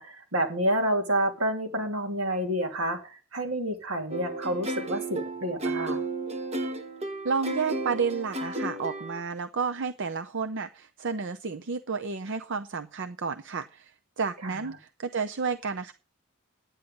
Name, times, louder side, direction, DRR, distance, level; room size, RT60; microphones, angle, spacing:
voice 1, 0.0-6.0 14.4-14.5, right 1 dB, 75° right, 2 dB, 2.9 m, -29 dB
sound 1, 4.1-9.2, right 2 dB, 30° right, 1.2 m, -33 dB
voice 2, 7.2-13.9 14.2-15.9, right 5 dB, 60° right, 9 dB, 0.7 m, -31 dB
10.0 x 9.6 x 5.3 m, 0.34 s
head